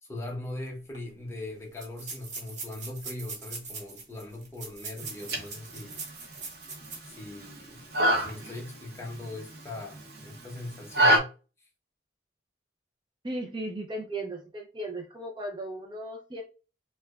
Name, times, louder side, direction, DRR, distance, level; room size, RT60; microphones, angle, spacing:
voice 1, 0.0-6.0 7.0-7.8 8.2-11.3, left 2 dB, 15° left, 0.8 m, -40 dB
sound 1, 0.7-0.8 0.9-1.0 1.7-7.2 7.6-7.7 8.1-8.3, right 4 dB, 40° right, 1.0 m, -41 dB
sound 2, 5.0-11.2, right 1 dB, 60° right, 0.8 m, -29 dB
voice 2, 13.2-16.4, right 1 dB, 25° right, 0.5 m, -36 dB
4.6 x 2.2 x 2.3 m
head